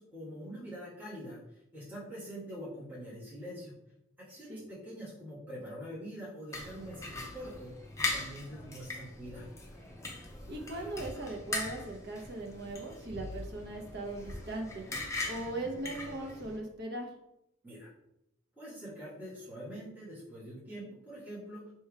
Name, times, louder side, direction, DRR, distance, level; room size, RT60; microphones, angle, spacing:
voice 1, 0.0-3.7 4.2-7.7 8.1-9.5 17.6-17.9 18.6-21.7, equal, 10° right, -11 dB, 1.4 m, -44 dB
sound 1, 6.5-16.6, left 2 dB, 15° left, 0.5 m, -40 dB
voice 2, 10.5-14.8 15.2-17.1, right 2 dB, 50° right, 1 dB, 0.9 m, -39 dB
3.4 x 3.1 x 4.7 m, 0.84 s
head